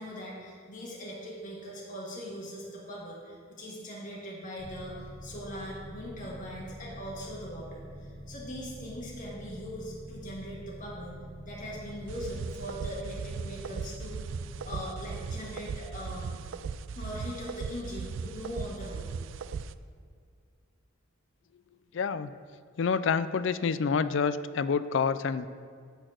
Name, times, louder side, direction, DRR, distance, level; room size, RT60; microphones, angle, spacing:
voice 1, 0.0-11.2 11.5-16.3 16.9-19.1, equal, 40° left, -4 dB, 1.7 m, -41 dB
sound 1, 4.6-17.8, equal, 10° left, 1.0 m, -46 dB
sound 2, 12.1-19.7, right 5 dB, 60° right, 0.3 m, -38 dB
voice 2, 21.9-22.3 22.8-25.5, left 5 dB, 60° left, 14 dB, 0.4 m, -28 dB
10.5 x 4.4 x 7.8 m, 2.1 s
head